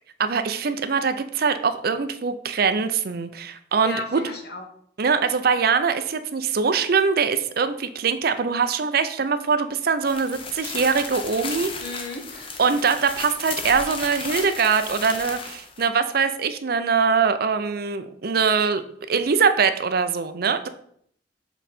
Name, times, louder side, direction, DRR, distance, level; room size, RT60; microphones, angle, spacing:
voice 1, 0.2-4.2 5.0-11.7 12.6-20.7, right 5 dB, 55° right, 10 dB, 0.5 m, -23 dB
voice 2, 3.8-4.6 11.8-12.5, left 2 dB, 60° left, 2 dB, 1.3 m, -34 dB
sound 1, 10.0-15.9, left 4 dB, 30° left, 0.8 m, -34 dB
7.2 x 4.0 x 4.3 m, 0.66 s
head